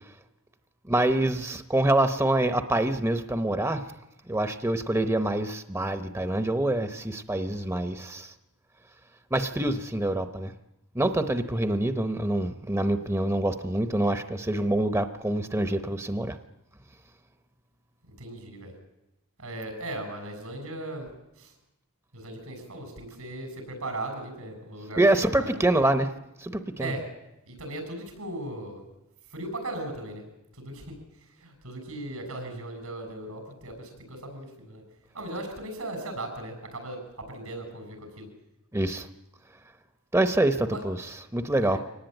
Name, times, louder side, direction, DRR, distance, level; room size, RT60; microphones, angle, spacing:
voice 1, 0.9-3.9 4.3-8.3 9.3-10.5 10.9-16.4 25.0-26.1 26.4-26.9 38.7-39.1 40.1-41.8, right 1 dB, 15° right, 9 dB, 0.8 m, -26 dB
voice 2, 18.1-18.7 19.4-21.1 21.4-21.5 22.1-25.6 26.8-27.0 27.5-28.8 29.3-30.2 30.6-31.0 31.4-34.8 35.1-38.3 40.7-40.8 41.6-41.8, right 1 dB, 90° right, 6 dB, 6.7 m, -37 dB
24.0 x 18.5 x 9.1 m, 0.93 s
head